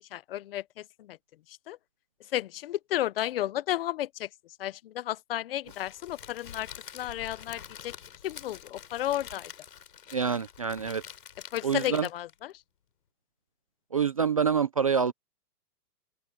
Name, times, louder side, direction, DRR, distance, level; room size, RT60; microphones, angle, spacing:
voice 1, 0.1-0.6 1.1-1.2 1.7-1.8 2.3-4.3 4.6-6.7 6.9-7.9 8.2-9.5 11.5-12.3, left 13 dB, 40° left, 0.6 m, -32 dB
Crackle, 5.7-12.4, left 9 dB, 75° left, 5.7 m, -47 dB
voice 2, 10.1-11.0 11.6-12.1 13.9-15.1, right 6 dB, 25° right, 0.4 m, -26 dB
open air
hypercardioid pair, 150°, 47 cm